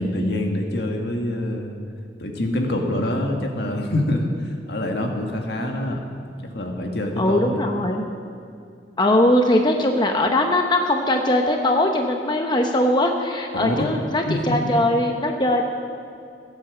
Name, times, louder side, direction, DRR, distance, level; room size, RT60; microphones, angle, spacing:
voice 1, 0.0-1.7 2.2-4.3 4.7-6.0 6.5-7.6 13.5-13.9 14.3-14.7, left 1 dB, 65° left, 2 dB, 1.8 m, -25 dB
voice 2, 7.2-8.1 9.0-15.6, left 1 dB, 25° left, 3 dB, 0.8 m, -20 dB
16.0 x 8.9 x 7.4 m, 2.4 s
head